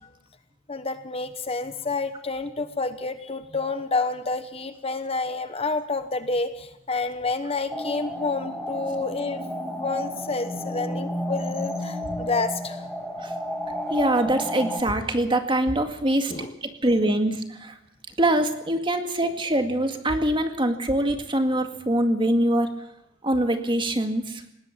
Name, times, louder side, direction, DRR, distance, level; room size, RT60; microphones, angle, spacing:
voice 1, 0.7-9.4 9.8-12.8 16.3-16.5, left 3 dB, 30° left, 10 dB, 1.0 m, -29 dB
sound 1, 7.7-14.8, equal, ahead, 2.3 m, -32 dB
voice 2, 13.9-17.7 18.2-22.7 23.2-24.4, right 1 dB, 25° right, 6 dB, 2.1 m, -24 dB
20.5 x 17.5 x 7.4 m, 0.83 s
head